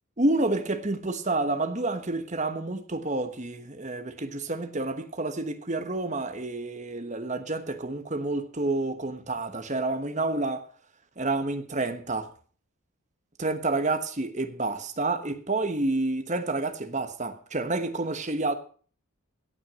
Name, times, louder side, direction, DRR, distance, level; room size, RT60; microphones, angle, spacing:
voice 1, 0.2-10.7 11.2-12.3 13.4-18.5, right 2 dB, 35° right, 1.2 m, -29 dB
17.0 x 6.1 x 7.0 m
head